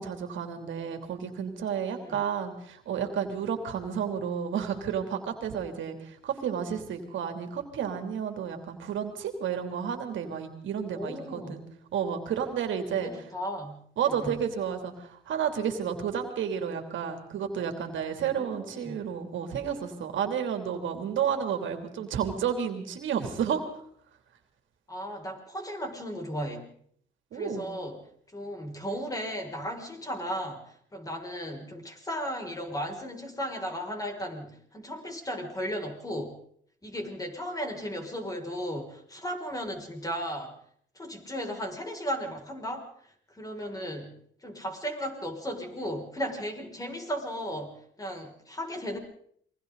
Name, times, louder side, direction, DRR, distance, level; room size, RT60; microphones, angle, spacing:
voice 1, 0.0-11.6 11.9-13.1 14.0-23.6 27.3-27.7, right 8 dB, 75° right, 6 dB, 3.1 m, -31 dB
voice 2, 10.9-11.6 13.0-13.8 14.2-14.4 18.4-19.0 24.9-26.6 27.3-28.0 28.3-36.4 36.8-40.5 40.9-42.9 43.3-49.0, equal, 20° left, 2 dB, 6.4 m, -35 dB
28.5 x 22.5 x 4.1 m, 0.66 s
cardioid pair, 90°, 20 cm